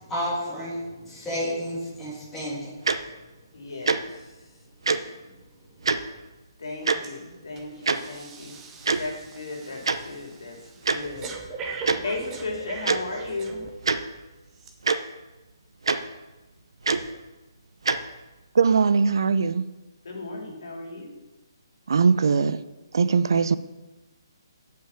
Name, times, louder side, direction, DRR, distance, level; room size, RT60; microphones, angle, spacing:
voice 1, 0.0-2.7, equal, 10° left, -6 dB, 2.9 m, -31 dB
Tick-tock, 2.8-3.0 3.8-4.0 4.8-5.0 5.8-6.0 6.8-7.0 7.9-8.0 8.8-9.0 9.8-10.0 10.8-11.0 11.8-12.0 12.8-13.0 13.8-14.0 14.8-15.0 15.8-16.0 16.8-17.0 17.8-18.0, right 4 dB, 90° right, 0.8 m, -22 dB
voice 2, 3.5-4.1 6.6-8.6 9.0-10.6 10.9-11.3 12.0-13.6 20.0-21.1, left 2 dB, 70° left, 0 dB, 2.9 m, -35 dB
Breathing, 7.0-7.2 7.6-14.0 14.6-14.7, right 4 dB, 10° right, 0.8 m, -40 dB
voice 3, 18.5-19.6 21.9-22.6 22.9-23.6, right 5 dB, 60° right, 14 dB, 0.5 m, -20 dB
7.5 x 5.8 x 7.3 m, 1.1 s
hypercardioid pair, 170°, 2 cm